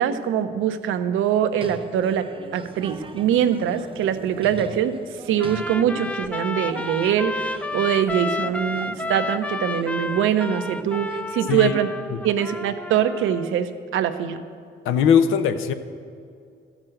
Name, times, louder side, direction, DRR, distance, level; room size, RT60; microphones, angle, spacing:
voice 1, 0.0-2.3 2.5-5.0 5.3-11.9 12.2-14.4, right 9 dB, 85° right, 9 dB, 0.7 m, -23 dB
sound 1, 1.5-11.4, right 4 dB, 25° right, 0.7 m, -42 dB
Trumpet, 5.4-13.5, left 2 dB, 5° left, 0.4 m, -31 dB
voice 2, 14.8-15.7, left 8 dB, 85° left, 10 dB, 0.7 m, -19 dB
13.5 x 6.2 x 7.7 m, 2.4 s
cardioid pair, 90°, 20 cm